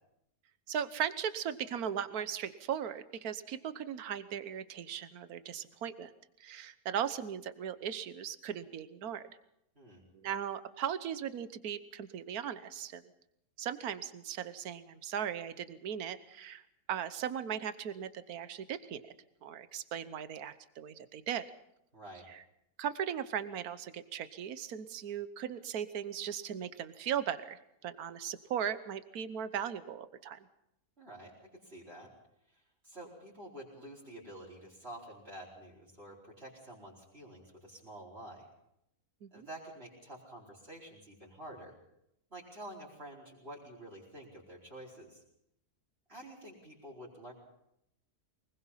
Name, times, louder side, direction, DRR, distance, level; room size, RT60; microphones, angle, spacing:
voice 1, 0.7-6.1 6.4-9.3 10.1-13.0 13.6-16.6 16.9-19.1 19.4-21.5 22.3-22.4 22.8-30.5 39.2-39.5, right 9 dB, 70° right, 13 dB, 1.5 m, -38 dB
voice 2, 21.9-22.3 31.0-32.1 32.5-38.5 39.3-41.7 42.3-45.2 46.1-47.3, right 1 dB, 40° right, -6 dB, 4.9 m, -49 dB
24.0 x 21.0 x 5.7 m, 0.79 s
omnidirectional pair, 1.6 m